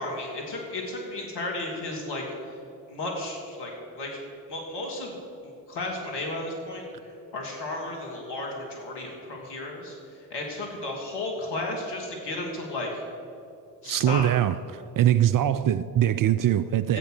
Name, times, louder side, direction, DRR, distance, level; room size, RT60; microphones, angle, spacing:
voice 1, 0.0-2.6 2.9-4.2 4.5-5.2 5.4-13.0 13.8-14.3 16.9-17.0, left 2 dB, 60° left, 2.8 m, -34 dB
voice 2, 13.8-14.5 15.0-17.0, right 11 dB, 45° right, 0.5 m, -22 dB
12.5 x 8.0 x 6.7 m
hypercardioid pair, 45°, 45 cm